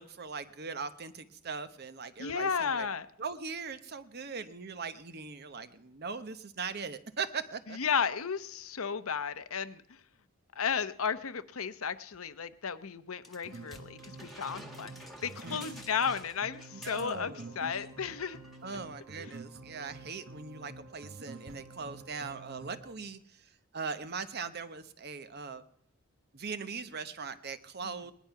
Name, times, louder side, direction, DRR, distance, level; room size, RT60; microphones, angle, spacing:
voice 1, 0.0-2.9 3.2-7.8 15.4-15.8 16.7-17.6 18.6-23.5 23.7-25.6 26.3-28.1, right 5 dB, 50° right, 11 dB, 0.9 m, -40 dB
voice 2, 2.2-3.1 7.7-10.0 10.6-18.4 19.2-19.3 27.8-27.9, left 6 dB, 75° left, 12 dB, 0.8 m, -34 dB
sound 1, 13.2-17.5 17.7-17.9 18.2-18.6 19.3-19.4, left 1 dB, ahead, 1.6 m, -51 dB
sound 2, 13.4-22.9, right 2 dB, 65° right, 1.2 m, -49 dB
19.5 x 11.0 x 5.8 m, 0.73 s
head